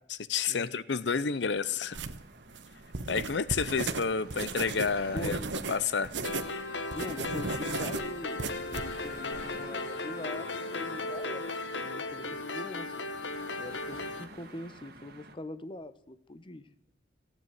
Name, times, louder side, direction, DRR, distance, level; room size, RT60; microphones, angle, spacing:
voice 1, 0.1-2.0 3.1-5.4 5.7-6.1, left 5 dB, 70° left, 17 dB, 0.6 m, -30 dB
sound 1, 1.5-15.4, right 2 dB, 60° right, 1.8 m, -50 dB
sound 2, 1.9-6.5 6.8-9.5, right 3 dB, 80° right, 1.2 m, -35 dB
voice 2, 5.1-5.5 6.9-13.0 13.6-16.7, left 1 dB, 30° left, 13 dB, 0.9 m, -43 dB
sound 3, 6.2-14.2, left 3 dB, 90° left, 1.4 m, -36 dB
15.5 x 9.3 x 9.3 m, 0.76 s
head